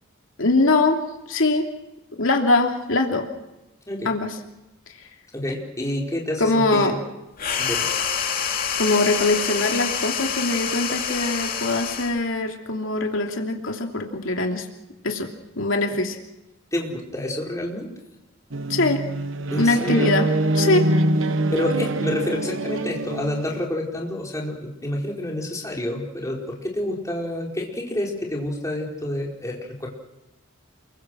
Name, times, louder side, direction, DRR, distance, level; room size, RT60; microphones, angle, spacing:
voice 1, 0.4-1.7 2.2-3.3 4.0-4.3 6.4-7.0 8.8-14.7 15.0-15.3 15.6-16.2 18.7-19.0 19.6-20.3 20.5-20.8, left 2 dB, 80° left, 3 dB, 2.9 m, -22 dB
voice 2, 5.3-7.0 7.6-7.9 16.7-17.9 19.5-20.1 21.5-29.9, left 1 dB, 15° left, -1 dB, 4.7 m, -28 dB
sound 1, 7.4-12.2, left 7 dB, 45° left, 3.2 m, -26 dB
sound 2, 18.5-23.7, right 1 dB, 75° right, 1.2 m, -24 dB
28.5 x 23.0 x 6.3 m, 0.95 s
head